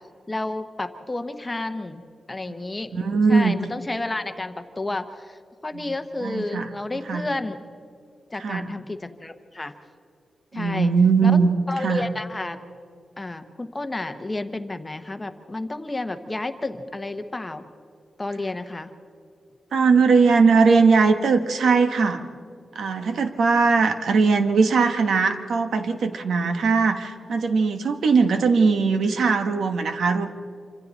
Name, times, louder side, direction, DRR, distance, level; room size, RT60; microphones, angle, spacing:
voice 1, 0.3-3.0 3.3-7.6 8.3-9.7 10.5-10.9 11.2-11.3 11.7-12.6 13.2-17.6 18.2-18.9, left 2 dB, 15° left, 8 dB, 0.9 m, -31 dB
voice 2, 2.9-3.5 5.7-5.9 6.2-6.7 7.1-7.3 8.4-8.7 10.5-11.5 11.8-12.0 19.7-22.2 22.7-30.3, right 4 dB, 80° right, 7 dB, 1.3 m, -20 dB
27.0 x 25.5 x 4.1 m, 2.4 s
wide cardioid pair, 155°, 0 cm